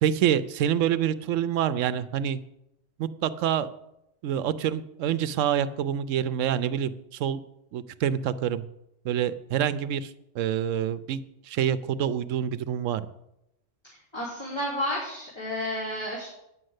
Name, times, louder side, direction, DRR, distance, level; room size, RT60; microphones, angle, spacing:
voice 1, 0.0-2.4 3.0-3.7 4.2-7.4 7.7-8.6 9.0-11.2 11.5-13.1, right 9 dB, 85° right, 15 dB, 1.0 m, -27 dB
voice 2, 14.1-16.3, left 1 dB, 20° left, -7 dB, 3.0 m, -31 dB
9.5 x 6.4 x 7.9 m, 0.84 s
omnidirectional pair, 1.3 m